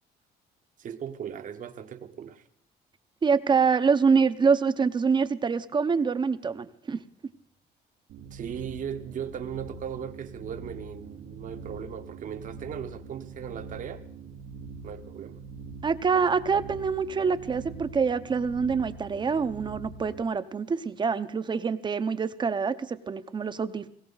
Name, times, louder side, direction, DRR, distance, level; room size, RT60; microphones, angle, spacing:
voice 1, 0.8-2.4 8.3-14.1 14.8-15.4, right 8 dB, 50° right, 1.1 m, -37 dB
voice 2, 3.2-7.0 15.8-23.9, right 5 dB, 25° right, 0.7 m, -25 dB
sound 1, 8.1-20.2, right 4 dB, 85° right, 1.3 m, -43 dB
19.5 x 17.0 x 4.0 m
cardioid pair, 110°, 17 cm